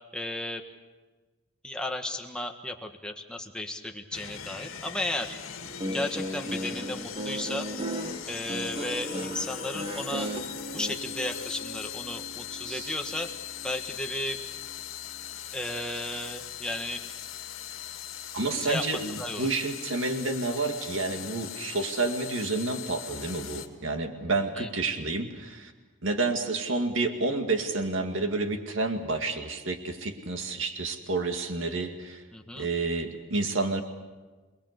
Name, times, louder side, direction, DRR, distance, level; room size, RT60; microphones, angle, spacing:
voice 1, 0.1-0.6 1.6-5.3 5.9-7.6 8.3-10.3 10.7-13.3 13.6-14.4 15.5-17.0 18.6-19.5 24.6-24.7 32.3-32.7, left 1 dB, 5° left, 3 dB, 1.6 m, -34 dB
sound 1, 4.1-23.7, left 10 dB, 80° left, 2.1 m, -40 dB
Guitar, 5.6-10.9, equal, 25° right, 1.5 m, -35 dB
Piano, 8.4-18.9, equal, 60° left, 2.5 m, -47 dB
voice 2, 18.3-25.7 26.0-32.2 32.6-33.8, right 3 dB, 70° right, 5 dB, 2.2 m, -29 dB
28.0 x 20.5 x 8.2 m, 1.3 s
head